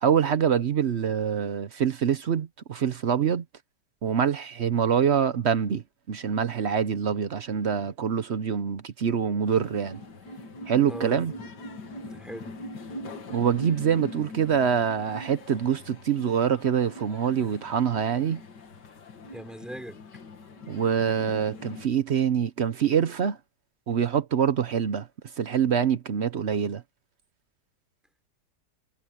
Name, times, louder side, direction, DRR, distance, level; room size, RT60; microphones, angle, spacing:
voice 1, 0.0-3.4 4.0-10.0 10.7-11.3 13.3-18.4 20.7-23.4 23.9-25.1 25.4-26.8, right 8 dB, 55° right, 0.8 m, -25 dB
sound 1, 9.4-21.9, left 1 dB, 70° left, 2.5 m, -42 dB
voice 2, 10.9-11.4 12.1-12.5 19.3-20.0, equal, ahead, 4.1 m, -40 dB
omnidirectional pair, 2.0 m